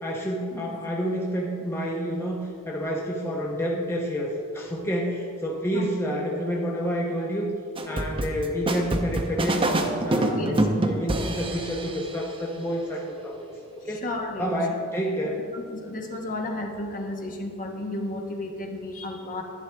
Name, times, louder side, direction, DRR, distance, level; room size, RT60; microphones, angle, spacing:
voice 1, 0.0-7.5 7.9-9.6 10.0-10.4 10.7-13.3 13.8-14.0 14.4-15.4, equal, 10° left, -3 dB, 0.8 m, -29 dB
sound 1, 7.8-12.1, right 1 dB, 25° right, 0.7 m, -26 dB
voice 2, 13.8-14.6 15.0-15.1 15.5-19.4, left 2 dB, 35° left, 2 dB, 1.2 m, -33 dB
11.5 x 10.0 x 3.4 m, 2.4 s
head